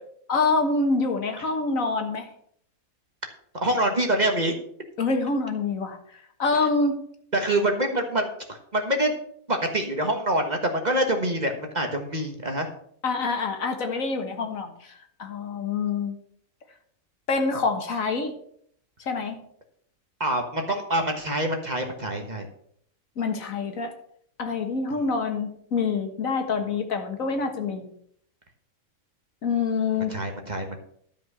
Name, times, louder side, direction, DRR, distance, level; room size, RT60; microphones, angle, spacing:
voice 1, 0.3-2.3 5.0-6.0 6.4-7.0 13.0-14.7 15.2-16.2 17.3-18.3 19.1-19.4 23.2-23.9 24.4-27.9 29.4-30.2, left 4 dB, 70° left, 5 dB, 1.8 m, -26 dB
voice 2, 3.6-4.5 7.3-9.1 9.5-12.7 20.2-22.5 30.1-30.8, right 1 dB, 30° right, 4 dB, 1.4 m, -25 dB
12.5 x 5.4 x 6.7 m, 0.66 s
omnidirectional pair, 1.5 m